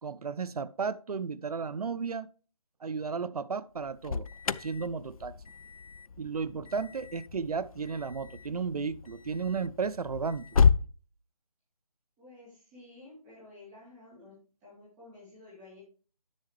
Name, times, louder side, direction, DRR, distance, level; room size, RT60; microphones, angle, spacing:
voice 1, 0.0-2.3 2.8-4.3 4.6-5.3 6.2-10.5, right 5 dB, 80° right, 0.6 m, -34 dB
Alarm, 3.8-10.9, left 6 dB, 70° left, 0.4 m, -31 dB
voice 2, 12.2-14.3 14.6-15.8, left 2 dB, 10° right, 3.0 m, -52 dB
10.5 x 7.4 x 3.2 m
figure-of-eight pair, 175°, 19 cm